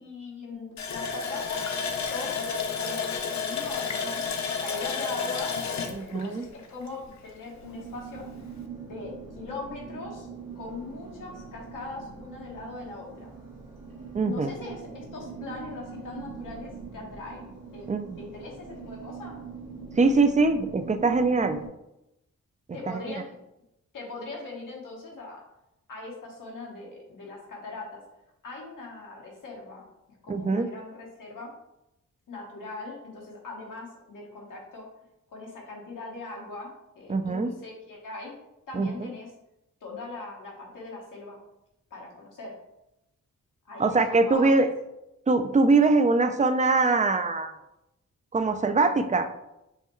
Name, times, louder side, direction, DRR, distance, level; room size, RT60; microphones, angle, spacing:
voice 1, 0.0-1.6 2.1-2.4 2.8-8.2 8.9-10.3 10.5-13.3 14.2-17.9 18.2-19.4 22.7-23.4 23.9-25.4 25.9-28.0 28.4-29.9 30.2-31.5 32.3-34.9 35.3-38.3 38.7-39.3 39.8-41.4 41.9-42.5 43.6-44.6, left 3 dB, 80° left, -3 dB, 1.3 m, -40 dB
Water tap faucet, 0.8-7.3 7.6-7.7 8.1-8.3, left 5 dB, 60° left, 0.5 m, -31 dB
voice 2, 5.9-6.4 14.1-14.5 17.9-18.2 20.0-21.6 22.9-23.2 30.3-30.7 37.1-37.5 38.7-39.1 43.8-44.7 45.3-47.5 48.3-49.3, right 3 dB, 25° right, 9 dB, 0.4 m, -23 dB
sound 1, 7.6-21.7, right 5 dB, 85° right, 1.2 m, -42 dB
5.5 x 2.2 x 3.1 m, 0.88 s
cardioid pair, 60°, 31 cm